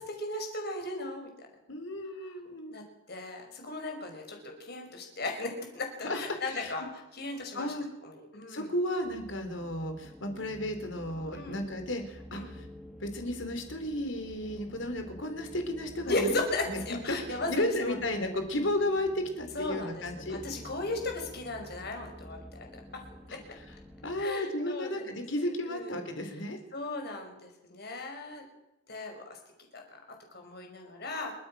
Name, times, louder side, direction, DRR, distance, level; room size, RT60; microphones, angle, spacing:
voice 1, 0.0-1.5 2.2-2.4 2.7-2.8 3.1-7.7 8.0-8.7 11.3-11.6 12.3-12.5 16.0-18.2 19.5-20.0 20.3-23.0 23.3-23.4 24.2-25.2 25.7-26.0 26.7-28.5 28.9-29.4 29.7-29.8 30.3-31.3, left 2 dB, 55° left, 3 dB, 5.7 m, -36 dB
voice 2, 1.7-2.7 6.0-6.7 7.5-7.9 8.5-12.7 13.0-16.8 17.1-20.4 23.3-23.4 24.0-26.6, left 1 dB, 70° left, 7 dB, 3.7 m, -33 dB
sound 1, 8.9-24.2, equal, ahead, 1.6 m, -49 dB
29.5 x 14.0 x 6.2 m, 0.95 s
head